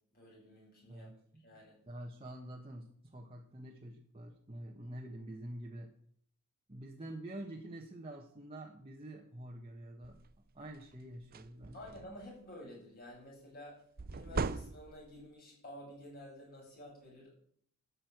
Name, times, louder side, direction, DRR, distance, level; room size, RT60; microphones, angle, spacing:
voice 1, 0.1-1.1 1.4-1.8 11.7-13.8 14.1-17.3, left 1 dB, 45° left, -3 dB, 7.9 m, -51 dB
voice 2, 0.9-1.4 1.9-5.9 6.7-10.2 10.5-11.8, right 1 dB, 25° right, -1 dB, 1.4 m, -47 dB
sound 1, 10.0-10.3 10.8-10.9 11.2-12.3 14.0-15.2, right 4 dB, 45° right, 0.6 m, -39 dB
13.0 x 6.6 x 9.3 m, 0.62 s
head